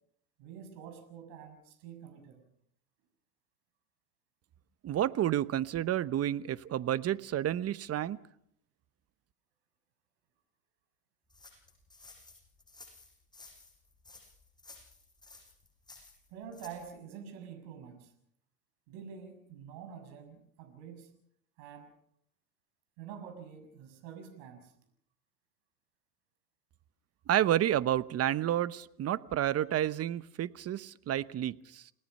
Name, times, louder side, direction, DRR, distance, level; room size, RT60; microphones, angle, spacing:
voice 1, 0.4-2.4 16.3-18.1 18.9-21.1 21.6-21.9 23.0-24.7, right 7 dB, 60° right, 7 dB, 6.4 m, -47 dB
voice 2, 4.8-8.2 27.3-31.9, right 11 dB, 30° right, 16 dB, 1.0 m, -30 dB
sound 1, 11.3-16.9, left 3 dB, 10° left, 7.8 m, -55 dB
29.0 x 19.5 x 5.5 m, 0.70 s
hypercardioid pair, 95°, 46 cm